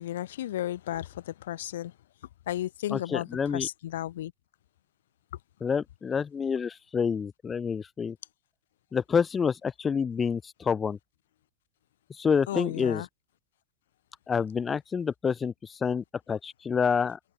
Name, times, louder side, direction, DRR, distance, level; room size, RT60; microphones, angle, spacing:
voice 1, 0.0-1.9 2.5-4.3 12.5-13.1, left 13 dB, 60° left, 3.2 m, -33 dB
voice 2, 2.9-3.7 5.6-8.2 8.9-11.0 12.2-13.0 14.3-17.2, left 6 dB, 20° left, 1.9 m, -28 dB
open air
figure-of-eight pair, 90°, 0 cm